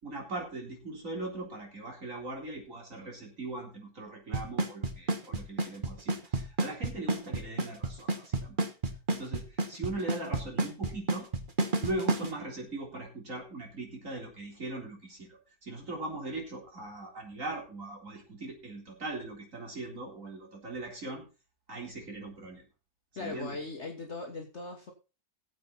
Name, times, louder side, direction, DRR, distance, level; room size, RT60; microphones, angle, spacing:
voice 1, 0.0-8.6 9.1-11.3 11.8-21.2 21.7-22.6 23.2-23.6, right 2 dB, 50° right, 0 dB, 4.1 m, -40 dB
Drum kit / Snare drum / Bass drum, 4.3-12.3, right 3 dB, 30° right, 1.4 m, -29 dB
voice 2, 23.2-24.9, left 3 dB, 45° left, 1 dB, 1.6 m, -39 dB
18.0 x 7.7 x 4.1 m, 0.31 s
omnidirectional pair, 1.8 m